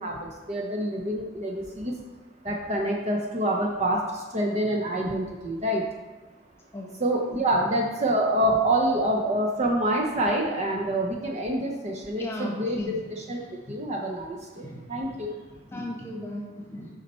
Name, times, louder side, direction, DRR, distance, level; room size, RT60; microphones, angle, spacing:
voice 1, 0.0-1.9 2.4-5.8 7.0-13.4 13.7-15.4, right 1 dB, 35° right, 0 dB, 0.6 m, -27 dB
voice 2, 12.2-13.0 14.5-14.8 15.1-15.2 15.7-16.9, left 1 dB, 15° left, -1 dB, 1.3 m, -36 dB
7.1 x 5.4 x 4.3 m, 1.3 s
head